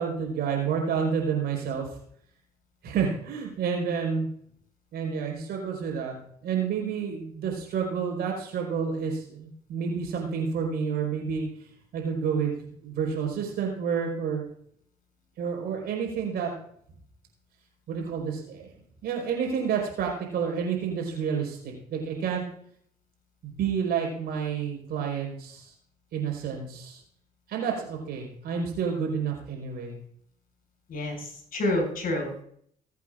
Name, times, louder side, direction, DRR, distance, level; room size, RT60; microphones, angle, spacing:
voice 1, 0.0-1.9 2.8-4.3 4.9-6.1 6.4-11.5 11.9-14.4 15.4-16.5 17.9-18.7 19.0-22.4 23.4-25.7 26.1-27.0 27.5-29.9, right 6 dB, 60° right, 0 dB, 4.6 m, -29 dB
voice 2, 30.9-32.4, left 1 dB, 50° left, 2 dB, 6.0 m, -29 dB
21.0 x 8.4 x 2.5 m, 0.64 s
hypercardioid pair, 50°, 19 cm